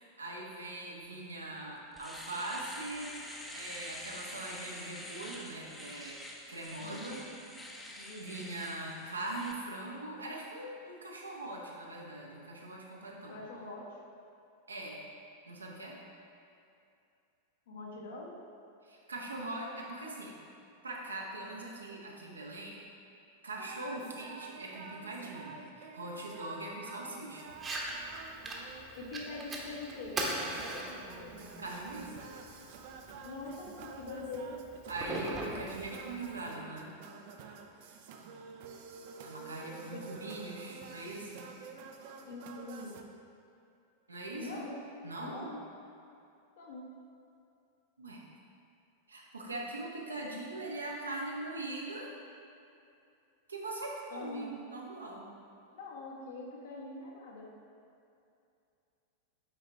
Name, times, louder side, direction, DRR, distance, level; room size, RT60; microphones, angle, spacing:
voice 1, 0.0-3.2 3.5-6.2 6.5-7.3 8.2-13.3 14.7-15.0 15.5-16.0 18.8-20.3 20.8-22.8 23.4-27.5 31.6-32.1 34.9-36.9 39.2-41.5 44.1-44.7 45.0-45.5 48.0-48.2 49.1-52.1 53.5-55.3, right 2 dB, 75° right, -2 dB, 1.0 m, -41 dB
Domestic sounds home sounds, 1.3-1.4 1.8-9.5, left 1 dB, 5° left, 0.7 m, -46 dB
voice 2, 6.8-7.4 7.9-8.5 13.1-14.0 17.7-18.4 28.9-31.6 33.2-34.6 39.9-40.0 42.2-43.1 44.3-44.8 45.2-45.6 46.5-46.9 54.1-54.6 55.7-57.5, left 2 dB, 60° left, -3 dB, 1.3 m, -44 dB
sound 1, 23.6-43.0, right 4 dB, 50° right, 0.5 m, -49 dB
Fire, 27.5-36.5, right 1 dB, 20° right, 1.0 m, -41 dB
8.0 x 4.8 x 3.4 m, 2.6 s
figure-of-eight pair, 90°, 0 cm